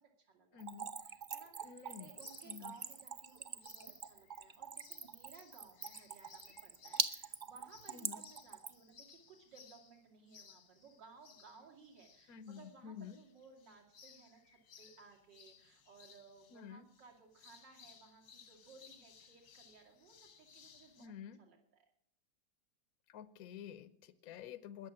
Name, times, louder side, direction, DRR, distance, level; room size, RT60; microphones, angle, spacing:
voice 1, 0.0-0.6 1.0-21.9 24.2-24.4, right 5 dB, 70° right, 1 dB, 3.2 m, -60 dB
voice 2, 0.5-0.9 1.6-2.1 2.4-2.7 7.9-8.2 12.3-13.2 16.5-16.9 21.0-21.4 23.1-24.9, left 8 dB, 60° left, 14 dB, 1.1 m, -50 dB
Splash splatter / Trickle dribble, 0.6-8.9, right 5 dB, 35° right, 0.8 m, -43 dB
sound 1, 1.9-21.1, left 7 dB, 85° left, 2.2 m, -62 dB
21.0 x 7.1 x 8.6 m, 0.67 s
omnidirectional pair, 2.0 m